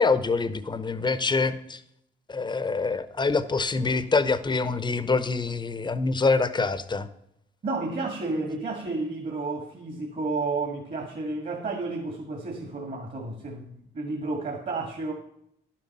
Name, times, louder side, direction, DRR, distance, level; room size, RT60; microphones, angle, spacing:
voice 1, 0.0-1.8 2.3-7.1, left 4 dB, 20° left, 0.8 m, -25 dB
voice 2, 7.6-15.1, right 3 dB, 45° right, 1.9 m, -31 dB
10.5 x 7.5 x 5.5 m
cardioid pair, 90°, 20 cm